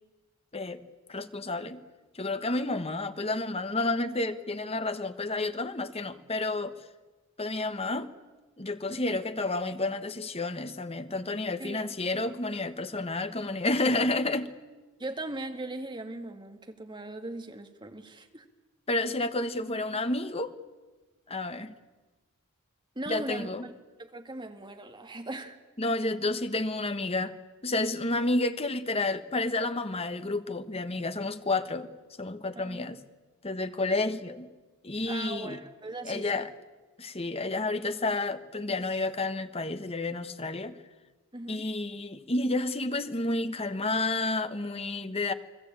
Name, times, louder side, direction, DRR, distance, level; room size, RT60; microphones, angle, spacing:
voice 1, 1.1-1.8 2.1-6.7 7.4-8.1 8.6-14.5 18.9-20.6 21.3-21.8 23.1-23.7 25.8-27.3 27.6-31.9 32.2-33.0 33.4-34.5 34.8-35.6 36.0-36.5 37.0-40.8 41.5-45.3, left 2 dB, 25° left, 10 dB, 1.3 m, -30 dB
voice 2, 8.9-9.2 11.6-11.9 15.0-18.5 23.0-23.7 24.0-25.6 32.6-32.9 35.1-36.5 41.3-41.7, right 2 dB, 20° right, 6 dB, 2.1 m, -39 dB
29.5 x 20.0 x 8.9 m, 1.2 s
head